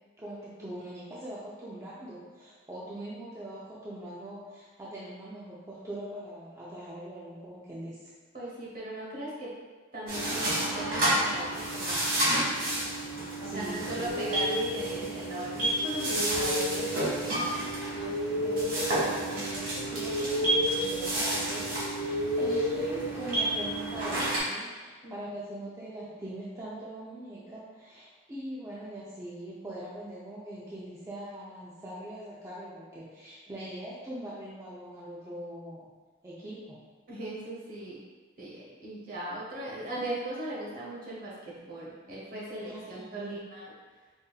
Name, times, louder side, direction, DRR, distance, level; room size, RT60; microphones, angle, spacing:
voice 1, 0.2-8.1 13.2-14.1 18.0-35.9 36.2-36.8 39.6-39.8 42.6-43.4, right 1 dB, 15° right, -8 dB, 0.4 m, -42 dB
voice 2, 8.3-9.5 9.9-12.1 13.4-17.5 25.0-25.2 37.1-38.0 38.4-43.7, right 1 dB, 45° right, -6 dB, 1.0 m, -38 dB
sound 1, 10.1-24.4, right 1 dB, 90° right, 1.5 m, -31 dB
sound 2, 14.1-23.8, left 1 dB, 60° left, 0.4 m, -34 dB
5.1 x 2.6 x 2.3 m, 1.4 s
head